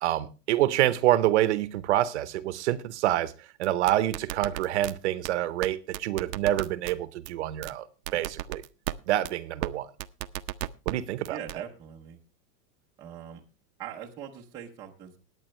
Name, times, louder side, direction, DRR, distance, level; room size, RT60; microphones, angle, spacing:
voice 1, 0.0-7.9 8.1-8.6 9.1-9.9 10.9-11.6, right 13 dB, 45° right, 0.8 m, -27 dB
sound 1, 3.6-4.9 5.2-5.3 5.6-5.7 5.9-6.9 7.2-7.3 7.6-7.7 8.1-8.9 9.2-9.3 9.6-9.7 10.0-10.9 11.2-11.6, right 15 dB, 85° right, 0.8 m, -33 dB
voice 2, 11.3-12.2 13.0-13.4 13.8-15.2, right 9 dB, 10° right, 0.6 m, -41 dB
20.0 x 8.6 x 3.1 m
supercardioid pair, 170°, 48 cm